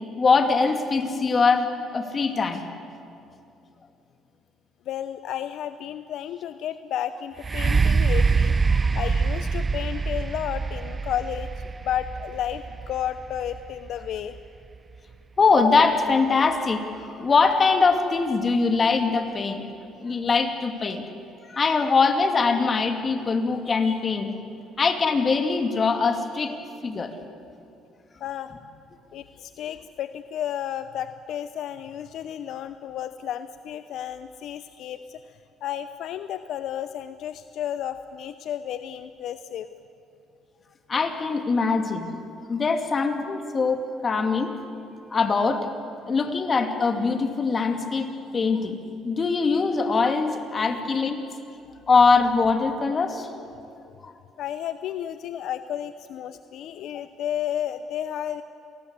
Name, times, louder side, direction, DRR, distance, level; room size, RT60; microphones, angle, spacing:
voice 1, 0.2-2.6 8.8-9.0 15.4-16.9 17.2-19.7 20.0-21.0 21.5-24.3 24.8-26.5 26.8-27.1 40.9-42.1 42.5-44.5 45.1-45.7 46.1-48.1 48.3-48.8 49.0-51.2 51.9-53.3 54.0-54.1, left 4 dB, 35° left, 6 dB, 2.5 m, -22 dB
voice 2, 4.9-14.3 28.2-28.5 29.1-39.7 54.4-58.4, left 10 dB, 70° left, 11 dB, 0.7 m, -32 dB
sound 1, 7.4-15.1 15.8-15.9, right 4 dB, 30° right, 0.5 m, -25 dB
27.5 x 19.5 x 8.2 m, 2.6 s
cardioid pair, 95°, 0 cm